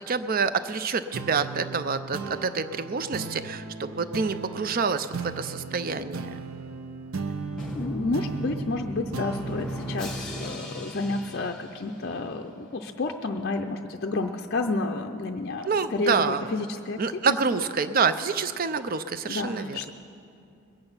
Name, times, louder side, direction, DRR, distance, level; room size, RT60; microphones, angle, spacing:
voice 1, 0.0-5.1 5.4-6.3 15.7-16.5 17.0-19.8, right 5 dB, 40° right, 12 dB, 0.5 m, -27 dB
sound 1, 1.1-12.0, right 4 dB, 70° right, 0.7 m, -37 dB
Drum, 7.6-12.4, left 1 dB, ahead, 1.2 m, -37 dB
voice 2, 7.7-17.6 19.3-19.9, left 2 dB, 45° left, 4 dB, 0.5 m, -30 dB
21.5 x 8.8 x 5.6 m, 2.6 s
head